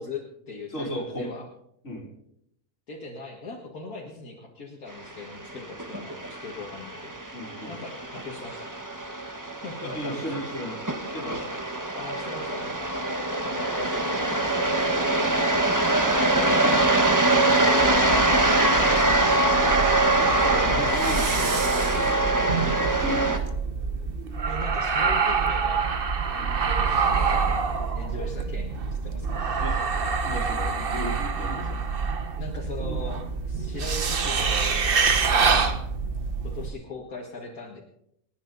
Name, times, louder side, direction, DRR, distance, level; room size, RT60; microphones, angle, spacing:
voice 1, 0.0-1.5 2.9-7.2 7.7-8.7 9.6-10.3 11.9-12.9 13.4-15.8 18.0-19.5 20.1-21.9 24.5-26.0 26.2-27.5 27.9-29.4 32.4-35.5 36.4-37.8, left 3 dB, 70° left, -2 dB, 2.3 m, -40 dB
voice 2, 0.7-1.3 1.8-2.1 7.3-7.8 9.8-11.6 16.3-16.9 20.2-21.3 22.8-23.6 26.4-26.6 29.6-29.8 30.2-31.8 35.6-35.7, left 1 dB, 50° left, -1 dB, 3.7 m, -35 dB
sound 1, 5.1-23.4, right 2 dB, 15° right, 1.2 m, -24 dB
sound 2, 17.8-36.7, right 5 dB, 40° right, 1.1 m, -26 dB
29.5 x 9.9 x 4.0 m, 0.74 s
omnidirectional pair, 1.6 m